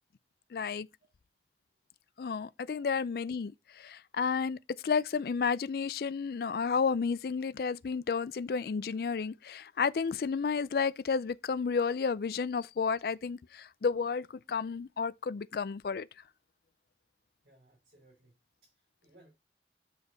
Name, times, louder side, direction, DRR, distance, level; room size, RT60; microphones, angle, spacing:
voice 1, 0.5-0.9 2.2-16.1, left 5 dB, 55° left, 0.4 m, -32 dB
voice 2, 17.4-18.4 18.6-19.3, right 1 dB, 60° right, 4.3 m, -62 dB
8.2 x 5.1 x 3.9 m
head